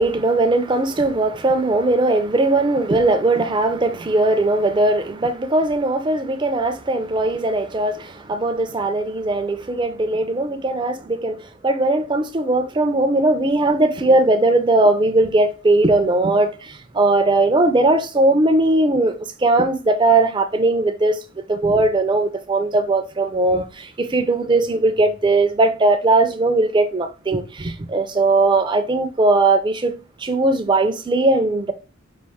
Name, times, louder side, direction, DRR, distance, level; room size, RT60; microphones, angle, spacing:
voice 1, 0.0-21.2 21.5-29.9 30.2-31.7, right 2 dB, 20° right, 0.4 m, -19 dB
5.3 x 2.5 x 3.4 m
head